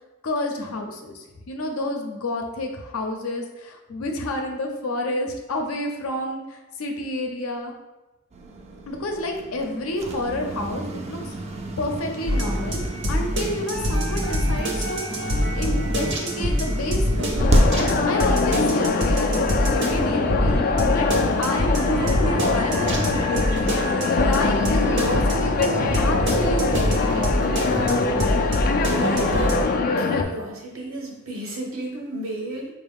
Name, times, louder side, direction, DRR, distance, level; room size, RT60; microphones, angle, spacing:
voice 1, 0.2-7.7 8.9-12.8 13.1-17.4 17.7-20.5 20.9-21.1 21.4-27.5, left 1 dB, 80° left, 3 dB, 0.6 m, -30 dB
sound 1, 8.3-19.4, right 1 dB, 30° right, 0.4 m, -30 dB
sound 2, 12.3-29.6, equal, 55° right, 0.7 m, -25 dB
sound 3, 17.4-30.2, left 4 dB, 45° left, 0.3 m, -23 dB
voice 2, 30.0-32.7, right 1 dB, 75° right, -1 dB, 1.0 m, -32 dB
4.5 x 2.2 x 3.5 m, 1.1 s
head